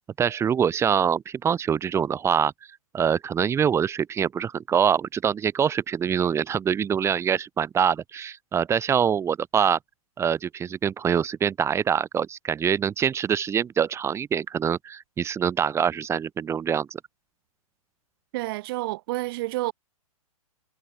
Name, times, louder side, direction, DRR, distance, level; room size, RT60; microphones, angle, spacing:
voice 1, 0.2-2.5 2.9-9.8 10.2-17.0, right 8 dB, 15° right, 5.2 m, -24 dB
voice 2, 18.3-19.7, right 20 dB, 40° right, 4.9 m, -29 dB
figure-of-eight pair, 120°, 19 cm